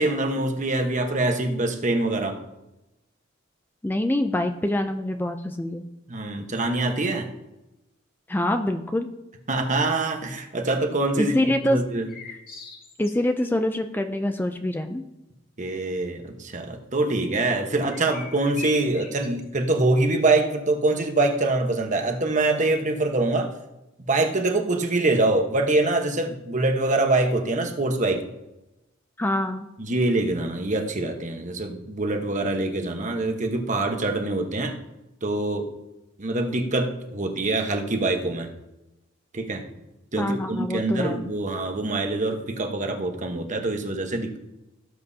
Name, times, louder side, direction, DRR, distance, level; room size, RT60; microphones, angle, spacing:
voice 1, 0.0-2.4 6.1-7.3 9.5-11.3 11.7-12.1 15.6-23.5 24.1-28.2 29.8-34.8 35.2-35.7 36.2-38.5 39.3-39.6 40.1-44.4, right 2 dB, 40° right, 4 dB, 1.2 m, -24 dB
voice 2, 3.8-5.9 8.3-9.1 11.2-11.8 13.0-15.0 29.2-29.7 40.2-41.2, left 1 dB, 10° left, 6 dB, 0.4 m, -25 dB
sound 1, 12.1-13.5 17.9-19.4, left 5 dB, 50° left, 2.1 m, -40 dB
17.5 x 7.8 x 2.8 m, 0.96 s
head